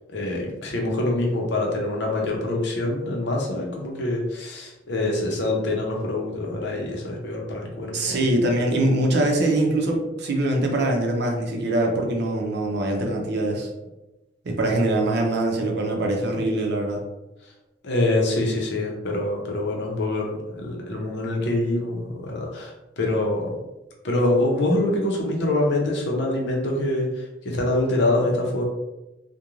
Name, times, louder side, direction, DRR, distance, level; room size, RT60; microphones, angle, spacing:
voice 1, 0.1-8.2 17.8-23.6 24.0-28.6, left 2 dB, 65° left, 0 dB, 0.6 m, -25 dB
voice 2, 7.9-13.7 14.4-17.0, right 1 dB, 60° right, 1 dB, 0.6 m, -23 dB
2.4 x 2.2 x 3.0 m, 0.99 s
head